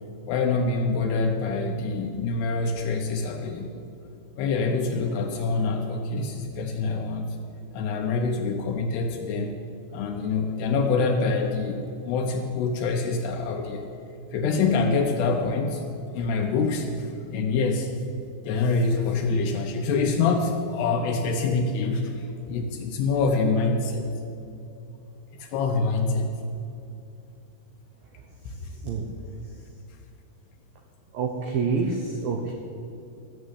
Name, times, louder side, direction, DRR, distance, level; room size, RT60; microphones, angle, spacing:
voice 1, 0.3-3.7 4.4-7.4 7.7-9.5 9.9-13.8 14.3-15.8 16.1-17.9 18.4-24.1 25.4-26.3 28.5-28.7, left 4 dB, 75° left, 4 dB, 2.6 m, -25 dB
voice 2, 31.1-32.5, right 5 dB, 75° right, 2 dB, 2.2 m, -27 dB
14.0 x 7.2 x 8.1 m, 2.7 s
omnidirectional pair, 5.3 m